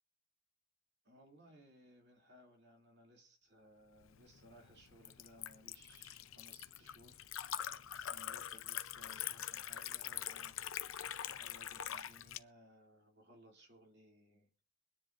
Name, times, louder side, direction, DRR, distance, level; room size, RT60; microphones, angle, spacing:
voice 1, 1.0-7.2 7.5-7.8 8.1-10.6 11.3-14.6, equal, 55° right, 1 dB, 2.6 m, -62 dB
Liquid, 4.0-12.4, left 10 dB, 80° left, 0.6 m, -44 dB
23.0 x 10.0 x 2.5 m, 0.37 s
head